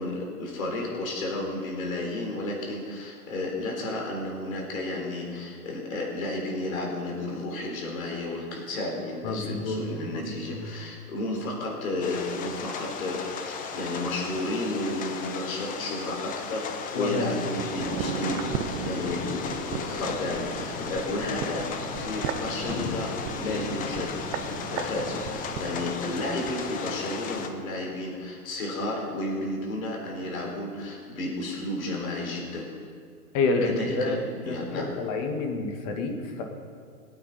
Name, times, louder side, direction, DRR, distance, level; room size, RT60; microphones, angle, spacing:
voice 1, 0.0-32.7 33.6-34.9, left 2 dB, 65° left, -1 dB, 4.2 m, -32 dB
voice 2, 9.2-10.6 17.0-17.4 33.3-34.2 34.5-36.4, left 3 dB, 35° left, 3 dB, 2.0 m, -29 dB
sound 1, 12.0-27.5, left 6 dB, 20° left, 0.9 m, -35 dB
sound 2, 17.5-26.6 26.9-27.0, right 8 dB, 30° right, 0.9 m, -36 dB
22.5 x 9.0 x 4.3 m, 2.1 s
hypercardioid pair, 130°, 45 cm